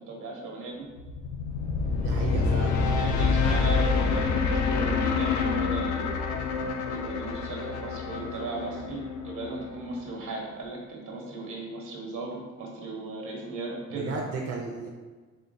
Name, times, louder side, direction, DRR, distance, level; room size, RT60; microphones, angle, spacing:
voice 1, 0.1-0.8 2.7-6.2 6.9-14.1, right 2 dB, 80° right, -1 dB, 1.1 m, -37 dB
sound 1, 1.0-10.1, left 4 dB, 70° left, 0.5 m, -27 dB
voice 2, 2.0-2.8 13.9-14.9, right 3 dB, 50° right, 0 dB, 0.5 m, -34 dB
4.3 x 3.2 x 2.6 m, 1.4 s
cardioid pair, 90°, 30 cm